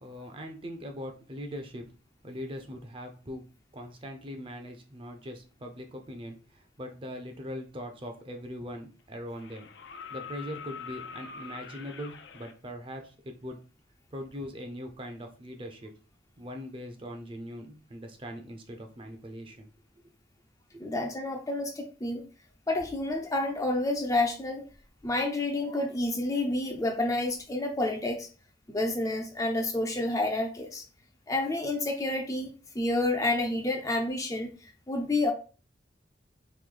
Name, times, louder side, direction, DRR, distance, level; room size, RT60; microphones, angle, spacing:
voice 1, 0.0-1.8 2.2-3.4 3.7-9.7 10.1-13.6 14.1-15.9 16.4-19.7 20.7-20.8, equal, 30° right, 4 dB, 0.6 m, -41 dB
sound 1, 8.2-8.3 9.3-12.5 14.3-14.4, left 6 dB, 70° left, 0.5 m, -44 dB
voice 2, 20.8-22.2 22.7-24.7 25.0-28.3 28.7-30.8 31.3-35.3, left 2 dB, 20° left, 3 dB, 0.5 m, -29 dB
3.1 x 2.6 x 3.8 m, 0.37 s
head